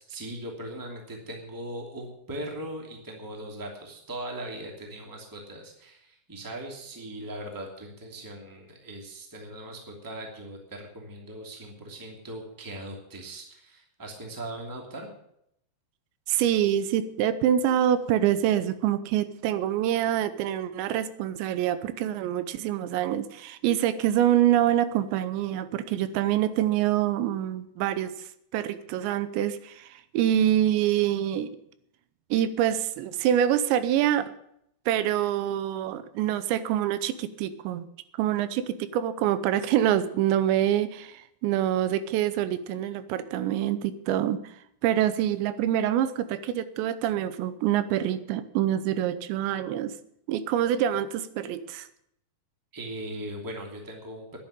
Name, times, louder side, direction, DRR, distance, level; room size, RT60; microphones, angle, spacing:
voice 1, 0.0-15.1 52.7-54.4, right 1 dB, 5° right, 1 dB, 1.6 m, -39 dB
voice 2, 16.3-28.1 28.5-31.6 32.3-34.3 34.9-37.9 38.2-44.4 44.8-49.9 50.3-51.9, right 11 dB, 85° right, 13 dB, 3.0 m, -26 dB
10.5 x 10.0 x 8.9 m, 0.74 s
omnidirectional pair, 5.1 m